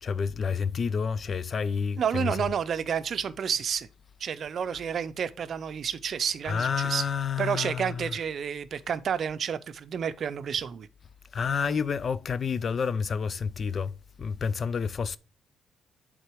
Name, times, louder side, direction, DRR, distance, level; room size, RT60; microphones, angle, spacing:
voice 1, 0.0-2.4 6.4-8.1 11.3-15.2, left 6 dB, 45° left, 0.4 m, -29 dB
voice 2, 2.0-3.9 4.2-7.0 7.4-10.9, right 7 dB, 55° right, 0.6 m, -30 dB
8.0 x 3.8 x 4.7 m
cardioid pair, 90°, 0 cm